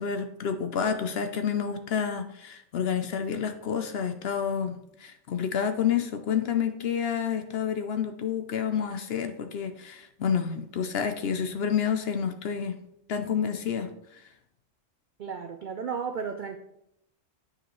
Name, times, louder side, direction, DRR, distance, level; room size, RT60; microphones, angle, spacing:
voice 1, 0.0-12.8 13.1-14.3, left 7 dB, 65° left, 8 dB, 0.7 m, -29 dB
voice 2, 15.2-16.6, right 6 dB, 70° right, 7 dB, 0.4 m, -34 dB
8.8 x 5.0 x 3.1 m, 0.77 s
omnidirectional pair, 1.4 m